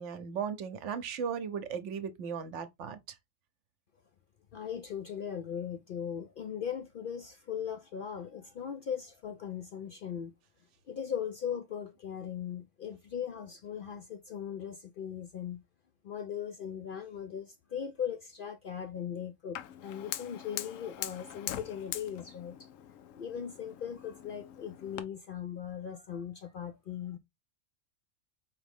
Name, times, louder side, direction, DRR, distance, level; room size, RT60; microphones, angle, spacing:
voice 1, 0.0-3.2, right 7 dB, 70° right, 1.0 m, -37 dB
voice 2, 4.5-10.3 10.9-15.6 16.0-22.7 23.2-27.2, left 8 dB, 65° left, 0.5 m, -39 dB
Fire, 19.6-25.0, left 11 dB, 90° left, 1.0 m, -43 dB
5.0 x 3.0 x 3.4 m
omnidirectional pair, 1.3 m